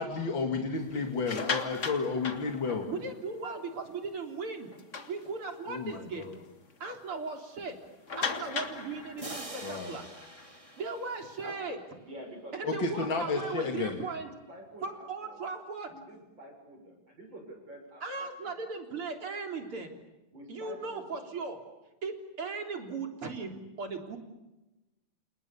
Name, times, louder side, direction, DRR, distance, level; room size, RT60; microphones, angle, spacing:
voice 1, 0.0-2.9 5.7-6.3 9.6-10.0 12.6-14.0, left 4 dB, 60° left, 3 dB, 2.9 m, -32 dB
sound 1, 1.1-3.2 3.7-3.9 4.2-4.3 4.7-5.7 6.2-6.3 6.7-6.8 8.1-11.4, left 4 dB, 35° left, 2.0 m, -38 dB
voice 2, 2.9-4.7 5.1-6.3 6.8-7.8 8.2-10.0 10.8-11.8 12.5-14.3 14.8-15.9 18.0-19.9 20.5-21.6 22.0-24.2, right 4 dB, 85° right, 4 dB, 4.5 m, -37 dB
sound 2, 9.2-11.9, right 2 dB, 15° right, 2.6 m, -45 dB
voice 3, 11.4-15.6 15.9-18.5 20.3-21.2, right 1 dB, 60° right, 2 dB, 7.7 m, -48 dB
29.0 x 29.0 x 7.1 m, 1.0 s
omnidirectional pair, 2.4 m